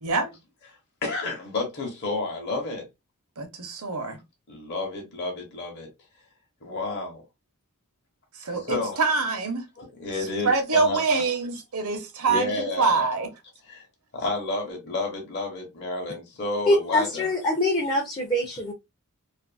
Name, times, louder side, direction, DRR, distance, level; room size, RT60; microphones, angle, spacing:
voice 1, 0.0-0.3 3.4-4.2 8.3-9.7 10.4-13.3, right 4 dB, 70° right, 0.7 m, -25 dB
voice 2, 1.0-2.9 4.5-5.9 6.6-7.2 8.5-9.0 9.8-11.0 12.3-13.1 13.7-13.8 14.1-17.3, left 2 dB, 50° left, 0.9 m, -30 dB
voice 3, 16.7-18.7, left 1 dB, 20° left, 0.5 m, -24 dB
2.5 x 2.5 x 2.4 m
head